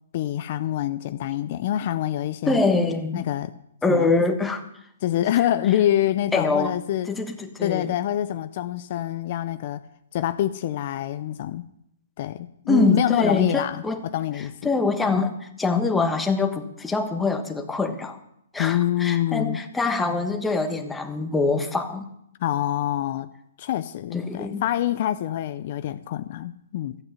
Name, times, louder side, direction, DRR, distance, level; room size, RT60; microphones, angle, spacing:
voice 1, 0.1-2.6 3.1-3.5 3.9-4.1 5.0-7.1 7.6-9.8 10.1-11.6 12.2-14.5 18.6-19.6 22.4-23.3 23.6-27.0, left 12 dB, 50° left, 11 dB, 0.6 m, -26 dB
voice 2, 2.5-3.2 3.8-4.6 6.3-6.7 7.1-7.9 12.7-14.0 14.6-18.2 18.5-22.1 24.1-24.6, left 3 dB, 10° left, 5 dB, 1.3 m, -24 dB
14.0 x 8.6 x 7.2 m, 0.76 s
hypercardioid pair, 140°, 0 cm